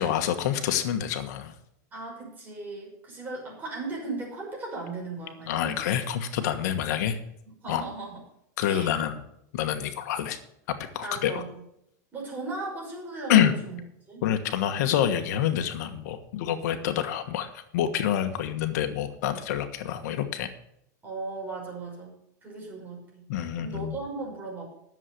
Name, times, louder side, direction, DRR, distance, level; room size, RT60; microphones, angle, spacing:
voice 1, 0.0-1.5 5.5-7.2 7.7-7.8 8.6-9.2 9.5-10.4 10.7-11.4 13.3-13.6 14.2-20.5 23.3-24.0, left 10 dB, 70° left, 9 dB, 1.4 m, -27 dB
voice 2, 1.9-6.0 7.6-8.2 8.6-9.0 11.0-11.6 12.1-13.8 14.1-14.2 21.0-23.3 23.6-24.7, right 3 dB, 20° right, -2 dB, 5.8 m, -37 dB
11.0 x 7.4 x 6.8 m, 0.76 s
supercardioid pair, 150°, 10 cm